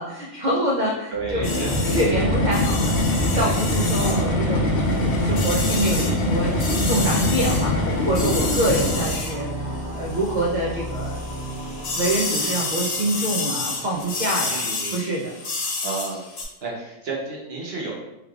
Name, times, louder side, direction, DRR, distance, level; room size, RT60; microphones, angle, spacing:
voice 1, 0.0-1.4 1.8-3.1 3.3-11.2 11.9-14.6 14.9-15.3, right 1 dB, 80° right, -2 dB, 0.4 m, -26 dB
sound 1, 1.1-14.5, equal, 35° right, 1.2 m, -34 dB
voice 2, 1.1-1.7 4.0-4.4 8.9-9.1 14.5-15.1 15.8-16.3 16.6-17.9, right 4 dB, 55° right, -3 dB, 0.9 m, -31 dB
sound 2, 1.3-9.3, left 1 dB, 55° left, 0.7 m, -23 dB
sound 3, 1.4-10.5 10.8-16.4, left 3 dB, 80° left, 1.2 m, -30 dB
3.3 x 3.2 x 2.3 m, 0.92 s
omnidirectional pair, 1.4 m